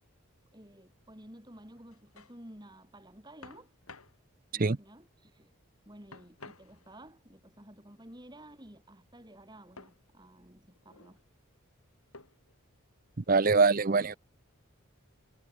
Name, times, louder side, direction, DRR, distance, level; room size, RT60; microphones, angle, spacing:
voice 1, 0.5-3.7 4.5-5.5 5.9-11.2, right 1 dB, 20° right, 4.3 m, -53 dB
sound 1, 1.8-2.4 3.4-4.2 6.1-7.1 9.8-10.0 10.7-11.2 12.1-12.5, left 3 dB, 80° left, 6.6 m, -52 dB
voice 2, 13.3-14.1, right 4 dB, 40° right, 0.6 m, -23 dB
head